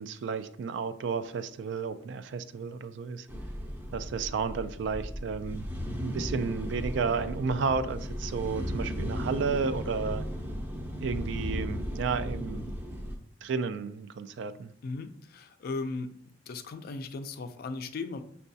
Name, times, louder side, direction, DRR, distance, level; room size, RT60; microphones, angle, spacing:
voice 1, 0.0-3.3 3.9-5.7 6.0-10.2 11.0-12.7 13.4-14.7, right 5 dB, 70° right, 12 dB, 0.3 m, -32 dB
sound 1, 3.3-13.2, equal, 10° right, 0.5 m, -36 dB
voice 2, 14.8-16.1 16.5-18.2, left 3 dB, 55° left, 9 dB, 0.3 m, -37 dB
6.2 x 2.3 x 2.6 m, 0.63 s
head